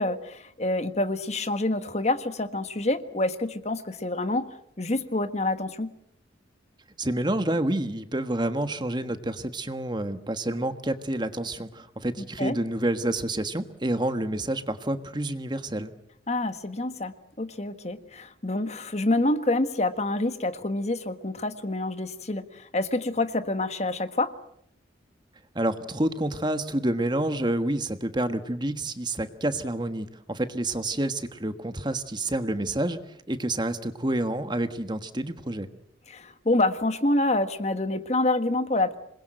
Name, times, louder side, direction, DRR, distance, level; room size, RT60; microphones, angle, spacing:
voice 1, 0.0-5.9 12.4-12.6 16.3-24.3 36.1-39.0, left 2 dB, 35° left, 10 dB, 1.5 m, -27 dB
voice 2, 7.0-15.9 25.5-33.0 33.3-35.7, right 1 dB, 25° right, 9 dB, 1.4 m, -28 dB
27.5 x 21.0 x 7.8 m, 0.71 s
head